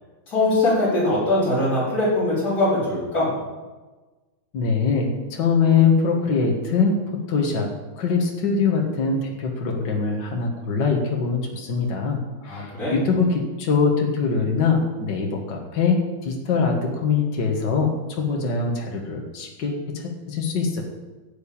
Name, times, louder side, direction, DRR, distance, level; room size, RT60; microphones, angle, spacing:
voice 1, 0.3-3.3 12.5-13.0, left 2 dB, 45° left, -9 dB, 5.5 m, -22 dB
voice 2, 4.5-20.8, left 5 dB, 60° left, 1 dB, 2.2 m, -23 dB
15.0 x 5.1 x 8.6 m, 1.2 s
omnidirectional pair, 2.2 m